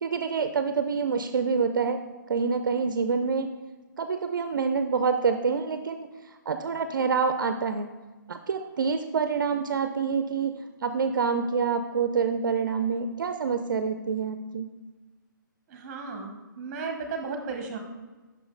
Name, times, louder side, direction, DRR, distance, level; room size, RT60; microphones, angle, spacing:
voice 1, 0.0-2.0 2.3-3.5 4.0-6.1 6.5-7.9 8.3-10.5 10.8-14.7, right 5 dB, 65° right, 8 dB, 0.4 m, -27 dB
voice 2, 15.7-17.8, right 4 dB, 30° right, 4 dB, 1.0 m, -35 dB
5.7 x 5.0 x 3.8 m, 1.2 s
hypercardioid pair, 150°, 11 cm